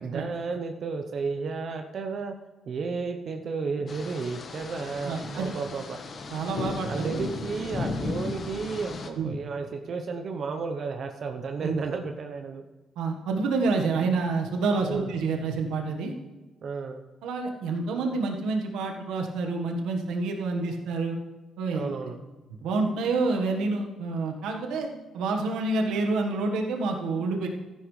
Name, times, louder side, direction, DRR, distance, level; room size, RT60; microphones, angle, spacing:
voice 1, 0.0-2.3 2.7-6.0 6.9-12.6 14.8-15.1 16.6-17.0 21.7-22.2, right 4 dB, 55° right, 5 dB, 0.9 m, -32 dB
sound 1, 3.9-9.1, left 3 dB, 50° left, 1.3 m, -35 dB
voice 2, 5.0-5.5 6.3-7.2 9.1-9.3 11.6-11.8 13.0-16.1 17.2-21.2 21.6-22.1 22.6-24.9 25.1-27.5, right 3 dB, 85° right, 2 dB, 1.4 m, -28 dB
14.0 x 10.5 x 3.3 m, 1.1 s
cardioid pair, 90°, 0 cm